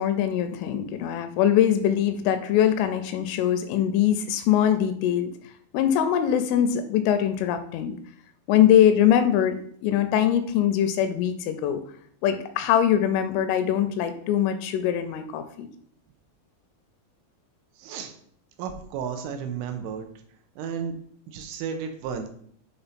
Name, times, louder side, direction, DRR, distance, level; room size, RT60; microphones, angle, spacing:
voice 1, 0.0-5.3 5.7-8.0 8.5-11.8 12.2-15.7, left 10 dB, 85° left, 9 dB, 2.9 m, -22 dB
voice 2, 17.8-18.1 18.6-20.1 20.6-20.9 21.3-22.3, right 7 dB, 85° right, 6 dB, 3.2 m, -33 dB
7.9 x 3.5 x 4.2 m, 0.62 s
omnidirectional pair, 5.8 m